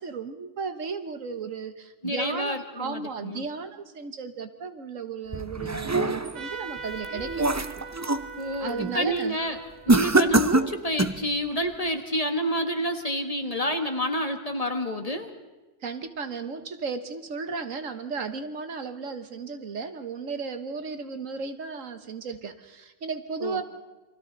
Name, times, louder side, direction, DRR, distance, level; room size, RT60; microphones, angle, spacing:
voice 1, 0.0-7.4 8.6-9.4 10.0-10.2 15.8-23.6, right 5 dB, 75° right, 9 dB, 1.6 m, -35 dB
voice 2, 2.0-3.4 8.4-9.6 9.9-15.3 23.4-23.6, equal, 30° left, 5 dB, 1.5 m, -29 dB
sound 1, 5.3-6.5 6.9-8.3 8.7-9.0 9.9-11.2, right 2 dB, 30° right, 0.3 m, -24 dB
Trumpet, 6.3-11.4, right 5 dB, 90° right, 3.9 m, -42 dB
29.5 x 24.0 x 4.0 m, 1.2 s
omnidirectional pair, 1.4 m